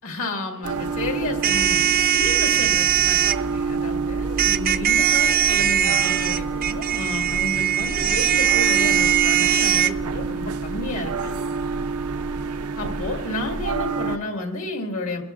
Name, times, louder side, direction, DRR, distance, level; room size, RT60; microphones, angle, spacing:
voice 1, 0.0-1.8 2.1-11.3 12.8-15.2, left 2 dB, 75° left, 2 dB, 2.0 m, -31 dB
sound 1, 0.6-14.2, right 4 dB, 90° right, 0.7 m, -28 dB
sound 2, 1.4-3.4 4.4-9.9, right 10 dB, 40° right, 0.3 m, -20 dB
23.0 x 13.5 x 2.5 m, 1.1 s
head